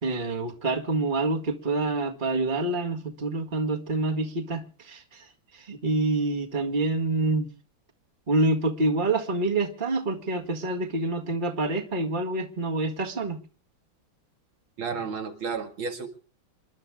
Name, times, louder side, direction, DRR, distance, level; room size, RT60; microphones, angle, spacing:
voice 1, 0.0-5.2 5.7-7.5 8.3-13.4, right 2 dB, 25° right, 1.8 m, -27 dB
voice 2, 14.8-16.1, right 5 dB, 90° right, 3.0 m, -32 dB
28.0 x 12.0 x 3.6 m
omnidirectional pair, 2.2 m